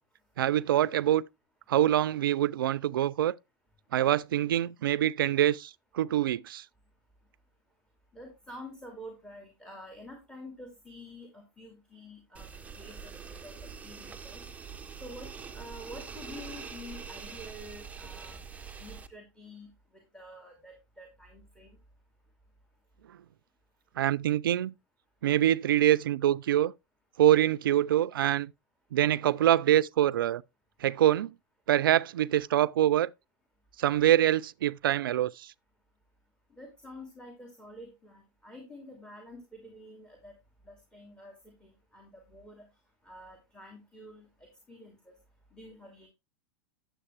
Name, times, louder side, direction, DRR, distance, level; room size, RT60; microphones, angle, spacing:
voice 1, 0.4-1.2 1.7-3.4 3.9-6.6 24.0-24.7 25.2-26.7 27.2-28.5 28.9-30.4 30.8-31.3 31.7-33.1 33.8-35.5, right 12 dB, 75° right, 0.4 m, -25 dB
voice 2, 8.1-12.5 12.7-13.1 13.4-14.5 15.0-18.5 18.8-21.8 36.5-40.3 40.7-42.7 43.0-45.1 45.5-46.1, left 1 dB, 5° left, 2.5 m, -48 dB
sound 1, 12.3-19.1, right 6 dB, 10° right, 0.8 m, -44 dB
9.9 x 7.3 x 3.3 m
hypercardioid pair, 110°, 11 cm